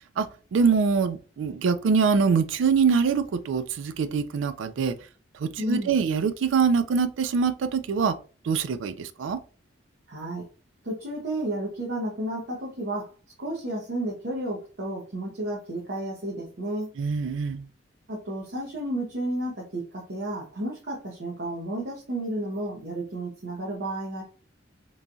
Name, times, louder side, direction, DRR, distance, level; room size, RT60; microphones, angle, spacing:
voice 1, 0.2-4.9 5.4-8.1 8.4-9.4 17.0-17.7, right 5 dB, 85° right, 0.4 m, -24 dB
voice 2, 5.6-5.9 10.1-10.5 10.8-13.1 13.4-16.9 18.1-24.2, right 1 dB, 60° right, 0.7 m, -32 dB
3.1 x 2.3 x 2.5 m
head